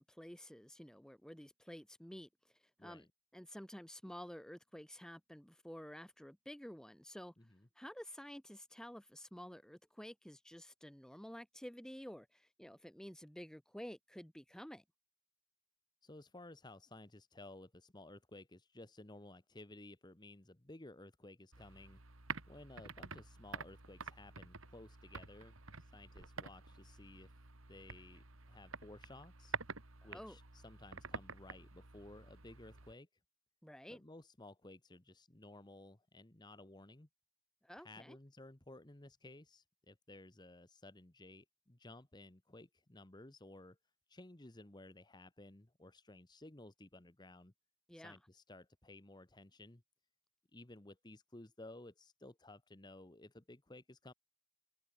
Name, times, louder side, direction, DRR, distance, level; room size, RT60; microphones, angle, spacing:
voice 1, 0.0-2.3 2.8-3.0 3.3-7.3 7.8-14.8 30.0-30.4 33.6-34.0 37.6-38.2 47.9-48.2, equal, 5° left, 0.7 m, -51 dB
voice 2, 7.4-7.7 16.0-22.0 22.5-27.3 27.7-29.6 30.0-33.1 33.9-37.1 37.8-43.8 44.1-47.5 47.9-49.8 50.5-54.1, left 2 dB, 20° left, 1.1 m, -56 dB
sound 1, 21.5-32.9, right 4 dB, 75° right, 2.6 m, -49 dB
head